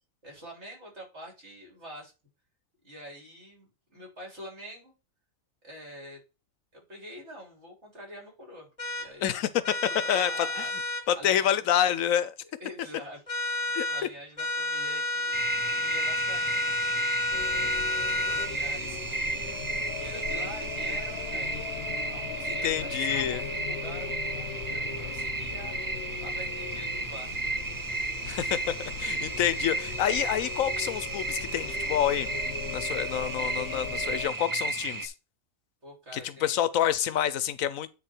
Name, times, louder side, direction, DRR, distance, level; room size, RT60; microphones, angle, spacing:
voice 1, 0.2-2.1 2.8-4.9 5.6-6.2 6.7-8.7 9.0-9.4 9.9-10.7 11.1-11.7 12.6-17.7 18.2-19.6 20.0-27.7 35.8-36.6, equal, 55° right, 4.0 m, -46 dB
sound 1, 8.8-9.1 9.6-11.1 13.3-14.1 14.4-18.5, left 2 dB, 30° left, 1.1 m, -30 dB
voice 2, 10.1-10.7 11.1-12.3 13.7-13.8 22.6-23.4 28.2-32.3 32.7-35.1 36.4-37.9, left 10 dB, 85° left, 1.1 m, -28 dB
sound 2, 15.3-35.1, right 3 dB, 30° right, 0.4 m, -33 dB
sound 3, 17.3-34.3, left 7 dB, 55° left, 1.0 m, -39 dB
9.5 x 3.7 x 4.4 m
omnidirectional pair, 1.4 m